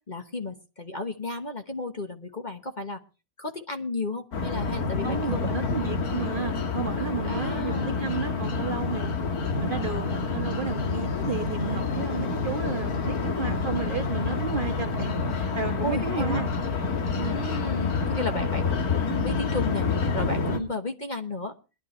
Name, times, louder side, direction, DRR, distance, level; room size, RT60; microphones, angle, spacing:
voice 1, 0.0-3.0 3.4-5.7 7.2-8.1 15.8-16.4 17.2-21.5, left 2 dB, 35° left, 6 dB, 1.2 m, -33 dB
sound 1, 4.3-20.6, left 4 dB, 85° left, 2.1 m, -28 dB
voice 2, 5.0-9.1 9.6-16.5 17.1-17.4 20.5-20.8, right 5 dB, 40° right, 7 dB, 1.1 m, -33 dB
21.5 x 11.5 x 3.2 m, 0.32 s
omnidirectional pair, 1.5 m